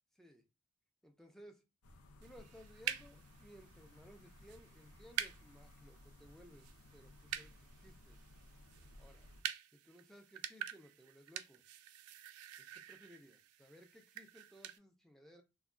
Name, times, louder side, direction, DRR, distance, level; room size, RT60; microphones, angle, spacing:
voice 1, 1.0-1.6 2.2-8.2 9.0-9.3 9.7-11.6 12.6-15.4, equal, ahead, 0.4 m, -60 dB
sound 1, 1.8-9.4, left 1 dB, 85° left, 0.6 m, -60 dB
sound 2, 2.2-14.8, right 10 dB, 85° right, 0.3 m, -47 dB
2.2 x 2.2 x 3.6 m
head